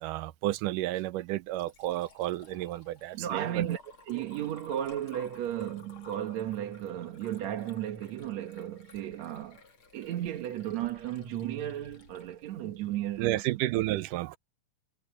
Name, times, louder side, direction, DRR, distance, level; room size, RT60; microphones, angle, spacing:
voice 1, 0.0-3.4 13.2-14.4, right 16 dB, 85° right, 2.3 m, -31 dB
Liquid, 1.2-13.3, left 4 dB, 40° left, 3.1 m, -56 dB
voice 2, 3.1-9.6 9.9-13.4, right 11 dB, 65° right, 2.4 m, -34 dB
omnidirectional pair, 3.6 m